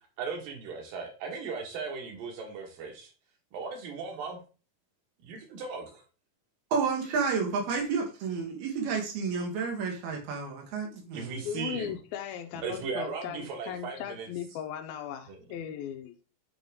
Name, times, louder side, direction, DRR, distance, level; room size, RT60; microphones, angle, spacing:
voice 1, 0.2-3.1 3.5-4.4 5.2-6.0 11.1-12.0 12.6-14.3 15.3-15.4, right 5 dB, 70° right, 2 dB, 2.9 m, -37 dB
voice 2, 6.7-11.4, right 5 dB, 90° right, 1 dB, 3.4 m, -31 dB
voice 3, 11.4-16.2, left 9 dB, 85° left, 6 dB, 2.5 m, -38 dB
8.7 x 3.8 x 3.5 m, 0.34 s
omnidirectional pair, 4.2 m